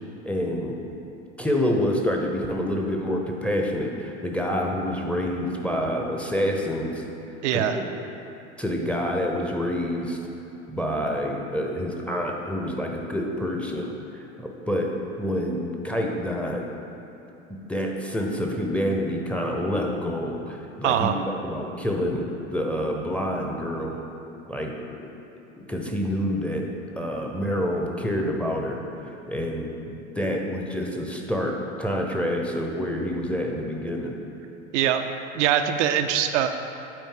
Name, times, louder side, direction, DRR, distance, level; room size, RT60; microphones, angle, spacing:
voice 1, 0.2-0.8 1.4-7.0 7.5-7.8 8.6-10.2 10.7-16.7 17.5-21.1 21.4-22.2 22.5-24.0 24.5-25.1 25.6-26.7 27.0-34.2, equal, 5° left, 0 dB, 0.7 m, -27 dB
voice 2, 7.4-7.8 20.8-21.2 34.7-35.0 35.3-36.5, right 10 dB, 65° right, 6 dB, 0.5 m, -22 dB
8.4 x 4.2 x 3.8 m, 2.8 s
hypercardioid pair, 80°, 38 cm